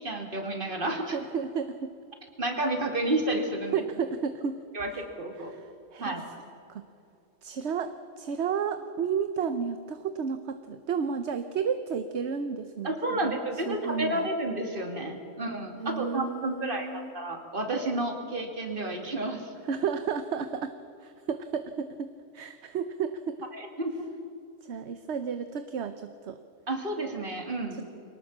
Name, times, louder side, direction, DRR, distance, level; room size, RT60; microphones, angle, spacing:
voice 1, 0.0-1.2 2.4-3.8 4.7-5.5 6.0-6.2 12.8-19.5 23.5-24.1 26.7-27.8, right 1 dB, 40° right, 4 dB, 2.6 m, -31 dB
voice 2, 1.1-1.9 3.7-4.6 4.9-5.0 5.5-6.2 6.7-6.8 7.4-13.4 13.7-14.3 15.8-17.1 19.7-20.7 21.0-23.4 24.6-26.4 27.7-27.8, right 6 dB, 60° right, 10 dB, 1.1 m, -32 dB
23.0 x 19.0 x 7.3 m, 2.6 s
omnidirectional pair, 1.4 m